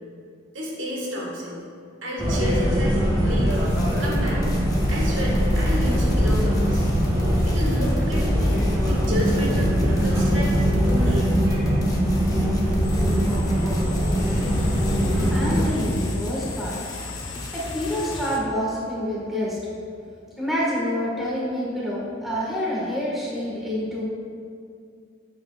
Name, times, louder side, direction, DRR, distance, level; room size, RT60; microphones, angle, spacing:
voice 1, 0.5-1.6 2.0-3.6 4.0-4.4 4.9-6.8 7.4-10.5 10.8-11.3, left 1 dB, 85° right, -4 dB, 1.5 m, -30 dB
sound 1, 2.2-15.7, equal, 20° right, 1.6 m, -21 dB
sound 2, 3.5-18.3, left 1 dB, 20° left, 0.6 m, -37 dB
sound 3, 12.8-18.4, left 6 dB, 75° left, 0.7 m, -39 dB
voice 2, 15.3-16.8 17.5-19.6 20.4-24.0, equal, ahead, -7 dB, 1.4 m, -27 dB
7.6 x 6.8 x 2.3 m, 2.3 s
head